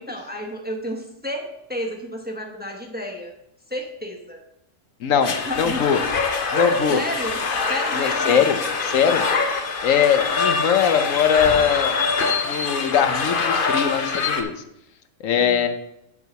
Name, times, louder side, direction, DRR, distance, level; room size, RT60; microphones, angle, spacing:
voice 1, 0.0-3.3 3.7-4.4 5.3-5.8 6.9-7.4 7.7-8.4 15.3-15.7, left 1 dB, 10° right, 1 dB, 1.0 m, -31 dB
voice 2, 5.0-6.0 6.5-7.0 7.9-9.3 9.8-12.1 12.4-14.5 15.2-15.7, left 7 dB, 85° left, 9 dB, 1.2 m, -21 dB
sound 1, 5.2-14.4, left 4 dB, 45° left, 1.0 m, -24 dB
7.9 x 4.6 x 6.7 m, 0.81 s
omnidirectional pair, 1.3 m